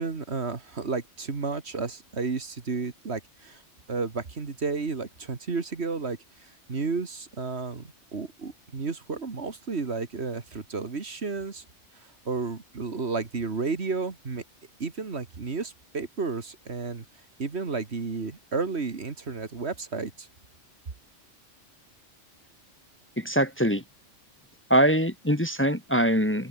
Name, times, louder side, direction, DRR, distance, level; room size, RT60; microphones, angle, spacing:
voice 1, 0.0-3.6 3.9-6.2 6.7-11.6 12.3-14.4 14.8-17.0 17.4-20.3, right 4 dB, 60° right, 2.2 m, -32 dB
voice 2, 23.2-23.8 24.7-26.5, equal, 10° left, 1.6 m, -23 dB
open air
omnidirectional pair, 1.3 m